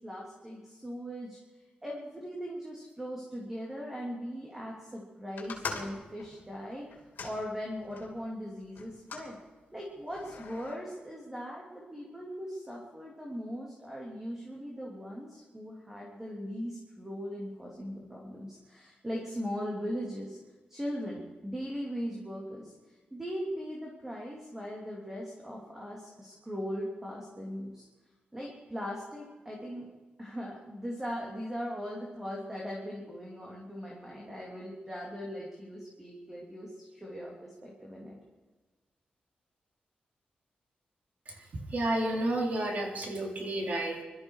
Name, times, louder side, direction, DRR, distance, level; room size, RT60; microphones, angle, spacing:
voice 1, 0.0-1.4 1.8-6.9 7.2-9.3 9.7-20.4 20.7-27.9 28.3-29.9 30.2-38.2, equal, 15° right, -2 dB, 3.0 m, -39 dB
sound 1, 5.4-8.1 8.8-9.3 10.1-10.7, left 5 dB, 75° left, 2.9 m, -42 dB
voice 2, 41.7-44.0, right 1 dB, 55° right, 1 dB, 3.3 m, -31 dB
22.0 x 13.5 x 4.8 m, 1.3 s
wide cardioid pair, 115°, 3 cm